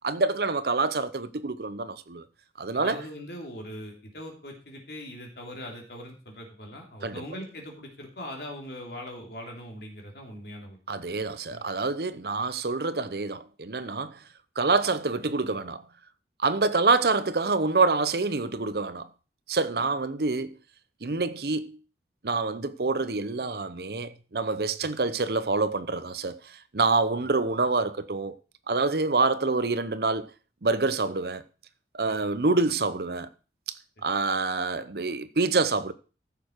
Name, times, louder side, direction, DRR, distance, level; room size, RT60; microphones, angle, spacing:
voice 1, 0.0-2.2 2.6-3.0 7.0-7.1 10.9-14.2 14.6-15.8 16.4-19.1 19.5-20.6 21.0-21.8 22.2-26.4 26.7-28.4 28.7-30.3 30.6-31.4 31.9-33.3 34.0-35.9, right 3 dB, 60° right, 0.7 m, -26 dB
voice 2, 2.7-10.8 11.2-11.6 24.8-24.9 32.1-32.2, equal, 65° left, 2.9 m, -41 dB
14.5 x 6.7 x 4.5 m
head